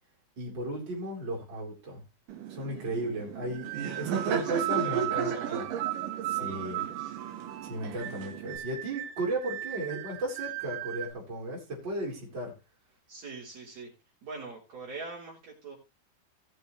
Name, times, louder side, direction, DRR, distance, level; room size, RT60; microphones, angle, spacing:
voice 1, 0.4-2.0 2.5-5.7 6.2-6.9 7.6-12.5, right 1 dB, 30° right, -4 dB, 4.5 m, -35 dB
Laughter, 2.3-8.6, right 8 dB, 65° right, 2.9 m, -35 dB
sound 1, 3.5-11.1, right 15 dB, 80° right, 2.6 m, -36 dB
voice 2, 3.6-5.7 6.3-7.1 13.1-13.9 14.2-15.8, right 3 dB, 50° right, -4 dB, 4.8 m, -43 dB
18.5 x 6.8 x 3.3 m, 0.27 s
omnidirectional pair, 4.3 m